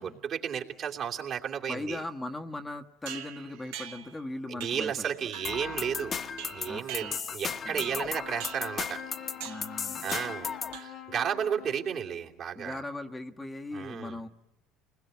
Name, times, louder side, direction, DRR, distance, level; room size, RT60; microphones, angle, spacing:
voice 1, 0.0-2.0 4.5-6.1 6.5-9.0 10.0-12.8 13.7-14.2, right 8 dB, 50° right, 0 dB, 2.9 m, -33 dB
voice 2, 1.7-5.1 6.6-7.2 7.5-8.0 9.4-10.2 12.5-14.3, left 2 dB, 15° left, 4 dB, 1.3 m, -39 dB
sound 1, 3.1-4.2 4.6-4.9 5.3-5.7 6.4-7.5 7.8-8.1 8.4-8.8 9.4-9.7 10.1-10.4 10.7-11.2, right 10 dB, 85° right, 2.0 m, -42 dB
sound 2, 5.4-10.8, left 6 dB, 40° left, 1.2 m, -36 dB
Brass instrument, 7.9-12.3, left 11 dB, 55° left, 1.5 m, -46 dB
29.0 x 21.0 x 9.3 m, 0.94 s
supercardioid pair, 95°, 0 cm